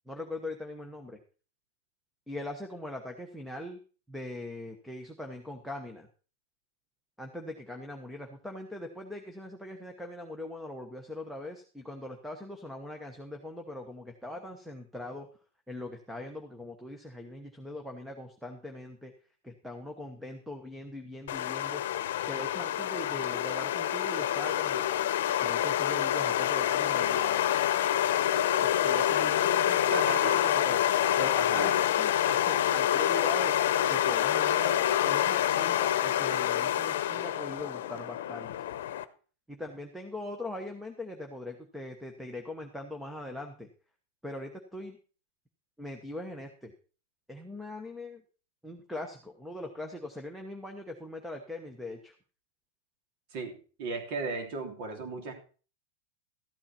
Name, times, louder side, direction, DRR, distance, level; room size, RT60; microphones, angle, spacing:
voice 1, 0.1-1.2 2.3-3.8 4.1-6.1 7.2-15.3 15.7-19.1 19.4-21.8 22.3-24.8 25.4-27.4 28.6-30.8 31.2-38.7 39.5-43.7 44.2-45.0 45.8-46.7 47.3-48.2 48.6-52.1, left 1 dB, ahead, 5 dB, 1.0 m, -41 dB
sound 1, 21.3-39.0, left 11 dB, 70° left, 0.8 m, -27 dB
voice 2, 29.9-30.4 31.5-31.8 53.3-55.3, right 4 dB, 45° right, 4 dB, 3.1 m, -36 dB
13.5 x 8.7 x 4.3 m, 0.38 s
supercardioid pair, 160°, 0 cm